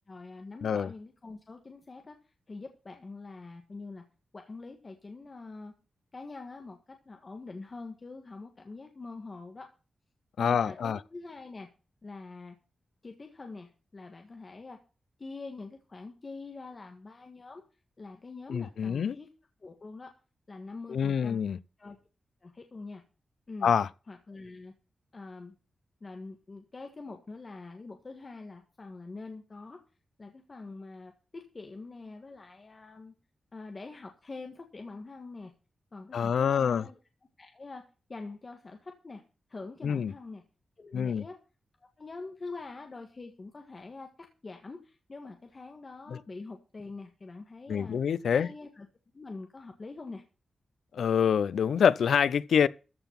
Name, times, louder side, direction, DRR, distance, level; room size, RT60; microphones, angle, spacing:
voice 1, 0.1-2.2 2.5-4.0 4.3-5.7 6.1-9.7 10.4-11.7 12.0-12.5 13.0-14.8 15.2-17.6 18.0-19.3 19.6-20.1 20.5-21.4 21.8-22.0 22.4-23.0 23.5-23.7 24.1-24.7 25.1-25.5 26.0-29.8 30.2-33.1 33.5-35.5 35.9-37.0 37.4-37.8 38.1-39.2 39.5-40.4 40.8-41.4 41.8-48.0 48.3-48.9 49.1-50.2, left 3 dB, 30° left, 1.6 m, -44 dB
voice 2, 10.4-11.0 18.5-19.2 20.9-21.6 23.6-23.9 36.1-36.8 39.8-40.1 40.9-41.2 46.1-46.2 47.7-48.5 50.9-52.7, left 7 dB, 85° left, 0.5 m, -26 dB
14.0 x 5.8 x 7.4 m
wide cardioid pair, 165°, 0 cm